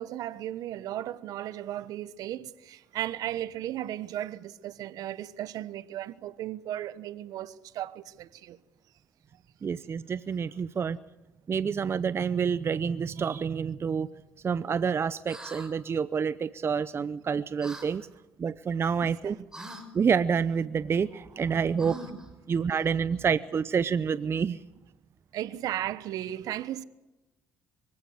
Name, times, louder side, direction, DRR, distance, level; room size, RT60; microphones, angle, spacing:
voice 1, 0.0-8.6 19.0-19.3 22.1-22.2 25.3-26.8, right 12 dB, 70° right, 1.1 m, -36 dB
voice 2, 9.6-11.0 11.5-14.1 14.4-18.1 18.4-19.4 19.9-22.0 22.5-24.6, right 6 dB, 40° right, 0.7 m, -28 dB
sound 1, 15.2-15.7 17.6-17.9 19.5-19.9 21.8-22.3, right 1 dB, 10° right, 5.1 m, -42 dB
24.0 x 15.5 x 8.1 m
supercardioid pair, 70°, 7 cm